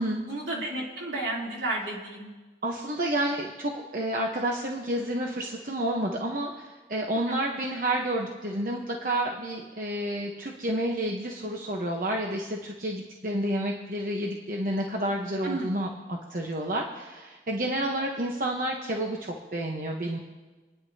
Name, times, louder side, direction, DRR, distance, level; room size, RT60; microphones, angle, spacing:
voice 1, 0.3-2.3 7.3-7.4 15.4-15.7, right 2 dB, 75° right, -4 dB, 3.3 m, -32 dB
voice 2, 2.6-20.2, right 1 dB, 50° right, 0 dB, 1.1 m, -30 dB
29.0 x 10.0 x 2.8 m, 1.3 s
head